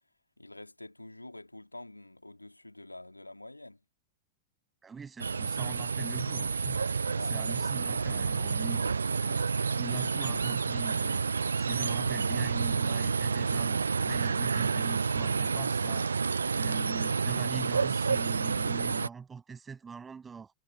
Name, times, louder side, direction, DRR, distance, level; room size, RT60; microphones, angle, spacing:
voice 1, 0.4-3.8 7.1-7.4, left 2 dB, 85° left, 2.9 m, -47 dB
voice 2, 4.8-7.0 7.3-11.2 11.6-16.1 16.5-20.5, right 5 dB, 15° right, 6.7 m, -43 dB
sound 1, 5.2-19.1, right 5 dB, 75° right, 0.3 m, -29 dB
figure-of-eight pair, 90°, 0 cm